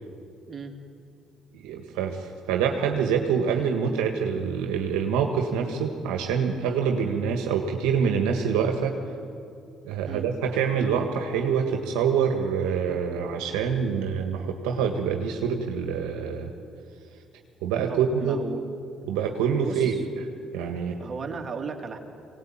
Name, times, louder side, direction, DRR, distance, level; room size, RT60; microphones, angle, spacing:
voice 1, 1.5-9.0 9.8-16.5 17.6-18.4 19.1-20.3 20.5-21.0, right 6 dB, 80° right, 3 dB, 1.7 m, -26 dB
voice 2, 17.9-18.6 19.6-20.0 21.0-22.0, right 5 dB, 40° right, 2 dB, 3.2 m, -35 dB
22.5 x 18.5 x 8.9 m, 2.5 s
supercardioid pair, 65°, 0 cm